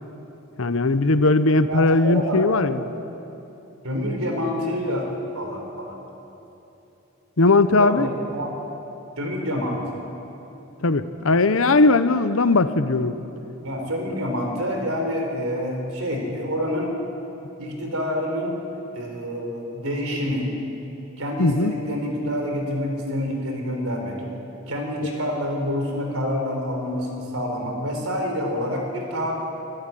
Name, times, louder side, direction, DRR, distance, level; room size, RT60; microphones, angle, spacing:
voice 1, 0.6-2.8 7.4-8.1 10.8-13.2 21.4-21.7, left 2 dB, 75° left, 12 dB, 0.9 m, -19 dB
voice 2, 1.7-2.5 3.8-5.1 5.3-5.9 7.8-8.5 9.2-10.0 13.6-16.9 17.6-18.6 18.9-20.5 21.2-24.2 24.7-29.3, equal, 90° right, 2 dB, 4.3 m, -27 dB
24.5 x 12.5 x 9.2 m, 3.0 s
head